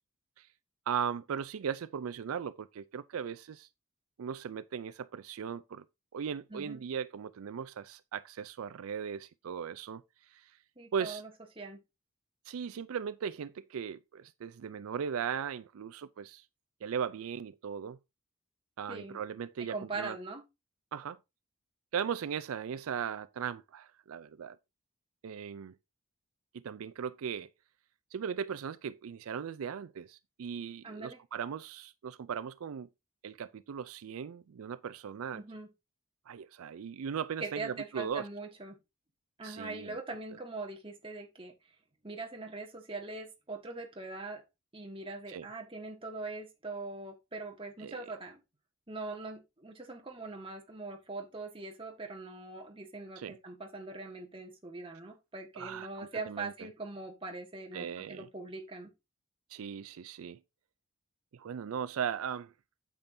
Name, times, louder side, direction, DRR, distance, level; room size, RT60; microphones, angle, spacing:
voice 1, 0.9-3.7 4.2-5.8 6.1-10.0 10.3-10.5 10.9-11.2 12.5-16.4 16.8-18.0 18.8-20.2 20.9-21.2 21.9-24.6 25.2-25.7 26.5-27.5 28.1-32.9 33.2-35.4 36.3-38.3 39.4-40.0 45.3-45.5 47.8-48.1 53.2-53.4 55.6-56.5 57.7-58.3 59.5-60.4 61.3-62.5, right 7 dB, 80° right, 0.4 m, -38 dB
voice 2, 6.5-6.8 10.8-11.3 11.5-11.8 18.9-19.2 19.7-20.4 30.8-31.2 35.3-35.7 37.4-38.7 39.4-41.5 42.0-44.4 44.7-48.4 48.9-58.9, right 3 dB, 25° right, 1.4 m, -42 dB
8.7 x 7.5 x 2.6 m
head